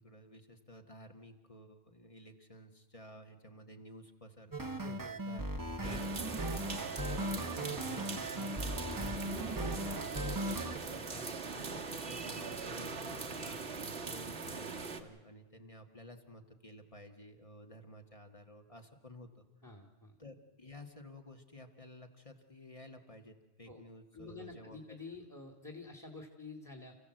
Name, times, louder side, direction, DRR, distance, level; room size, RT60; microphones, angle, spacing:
voice 1, 0.0-5.5 5.8-10.0 10.4-19.4 20.2-25.0, left 1 dB, 30° left, 4 dB, 1.7 m, -53 dB
sound 1, 4.5-10.8, right 1 dB, 20° right, 1.0 m, -38 dB
voice 2, 4.8-5.4 19.6-20.2 23.7-23.8 24.1-27.0, left 3 dB, 15° left, 4 dB, 2.2 m, -49 dB
sound 2, 5.8-15.0, right 4 dB, 80° right, 1.9 m, -41 dB
29.0 x 15.5 x 7.8 m, 1.2 s
omnidirectional pair, 1.1 m